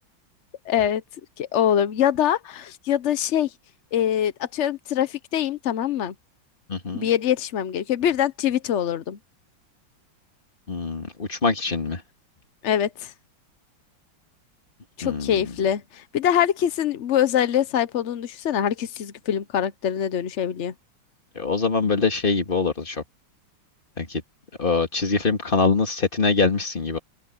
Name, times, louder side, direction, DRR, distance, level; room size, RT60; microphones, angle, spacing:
voice 1, 0.7-1.0 1.4-3.5 3.9-6.1 6.9-9.2 12.6-13.1 15.0-20.7, left 10 dB, 80° left, 0.6 m, -24 dB
voice 2, 6.7-7.1 10.7-12.0 15.0-15.4 21.4-23.0 24.0-24.2 24.6-27.0, left 4 dB, 25° left, 2.3 m, -23 dB
open air
omnidirectional pair, 2.3 m